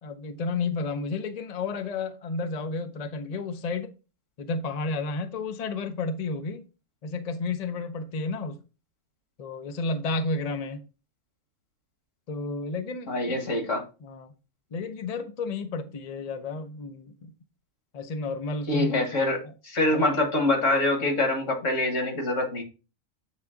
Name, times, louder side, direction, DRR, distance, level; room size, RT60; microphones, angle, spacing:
voice 1, 0.0-3.9 4.4-6.7 7.0-8.6 9.4-10.8 12.3-13.4 14.0-14.3 14.7-17.3 17.9-19.0 19.4-19.5 19.9-20.2, left 3 dB, 45° left, 0.5 m, -32 dB
voice 2, 13.1-13.8 18.7-22.6, left 2 dB, 65° left, 2.0 m, -25 dB
7.5 x 3.5 x 3.7 m
omnidirectional pair, 1.4 m